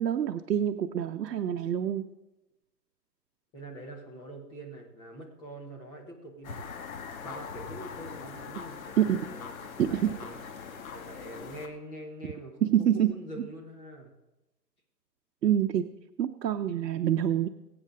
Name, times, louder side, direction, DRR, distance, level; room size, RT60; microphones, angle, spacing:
voice 1, 0.0-2.1 9.0-9.3 9.8-10.2 12.6-13.5 15.4-15.9 16.2-17.5, right 10 dB, 85° right, 6 dB, 0.9 m, -27 dB
voice 2, 3.5-6.7 7.2-14.1, right 1 dB, 10° left, 0 dB, 0.8 m, -45 dB
sound 1, 6.4-11.7, left 6 dB, 55° left, 1.7 m, -42 dB
22.0 x 8.7 x 3.8 m, 1.0 s
hypercardioid pair, 160°, 50 cm